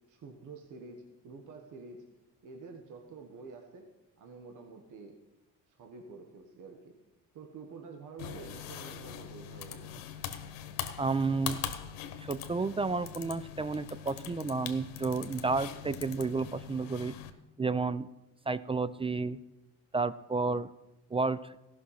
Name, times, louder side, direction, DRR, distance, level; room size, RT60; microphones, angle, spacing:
voice 1, 0.1-2.0 2.4-3.9 4.2-5.2 5.7-6.9 7.3-9.9, right 4 dB, 65° right, 4 dB, 1.4 m, -48 dB
sound 1, 8.2-17.3, left 9 dB, 85° left, 1.1 m, -42 dB
voice 2, 11.0-11.6 12.2-17.1 17.6-18.1 18.5-19.4 19.9-20.7 21.1-21.4, right 4 dB, 15° right, 15 dB, 0.4 m, -31 dB
15.0 x 6.1 x 5.6 m, 0.97 s
cardioid pair, 85°, 33 cm